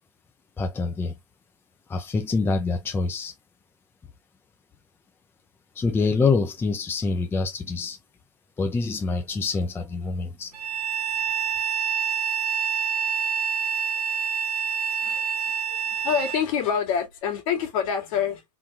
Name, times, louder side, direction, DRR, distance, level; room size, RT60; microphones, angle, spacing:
voice 1, 0.6-1.1 1.9-3.3 5.8-8.0 8.6-10.5, left 4 dB, 10° left, 0.6 m, -25 dB
Bowed string instrument, 10.5-16.4, right 7 dB, 90° right, 1.0 m, -27 dB
voice 2, 14.9-18.4, left 7 dB, 60° left, 1.9 m, -27 dB
3.9 x 3.7 x 2.8 m
hypercardioid pair, 115°, 20 cm